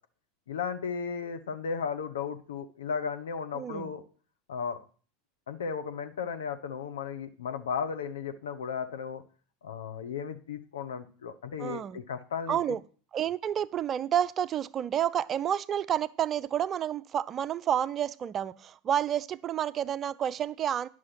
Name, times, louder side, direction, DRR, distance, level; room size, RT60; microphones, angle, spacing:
voice 1, 0.5-4.0 4.5-4.8 5.5-9.2 9.6-12.6, left 6 dB, 75° left, 1.0 m, -35 dB
voice 2, 3.5-3.9 11.6-12.0 12.5-12.8 13.1-20.9, right 10 dB, 35° right, 0.4 m, -30 dB
10.5 x 6.3 x 5.9 m
figure-of-eight pair, 80°, 0 cm